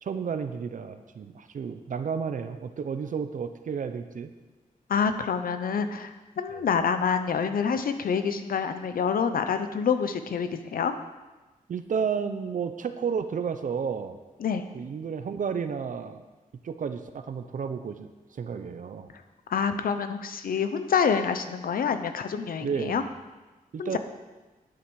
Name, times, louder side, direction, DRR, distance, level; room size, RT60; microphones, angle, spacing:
voice 1, 0.0-4.3 6.5-6.6 11.7-14.2 14.7-16.2 16.6-19.1 22.6-23.0 23.7-24.0, right 6 dB, 60° right, 9 dB, 0.8 m, -32 dB
voice 2, 4.9-10.9 14.4-14.7 19.5-23.0 23.8-24.0, left 6 dB, 75° left, 9 dB, 0.9 m, -27 dB
10.5 x 8.6 x 6.3 m, 1.2 s
wide cardioid pair, 115°, 15 cm